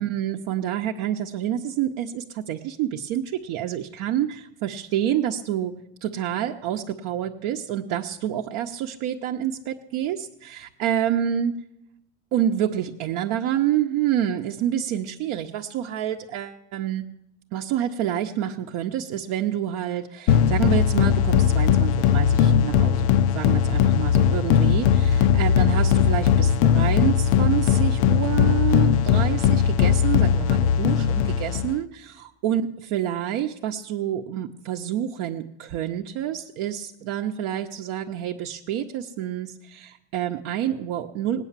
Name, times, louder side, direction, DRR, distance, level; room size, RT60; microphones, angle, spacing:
voice 1, 0.0-5.7 6.0-11.5 12.3-17.1 17.5-41.4, right 11 dB, 50° right, 2 dB, 0.8 m, -28 dB
sound 1, 20.3-31.8, left 8 dB, 60° left, 0.6 m, -19 dB
18.5 x 9.1 x 7.3 m, 0.82 s
cardioid pair, 170°, 42 cm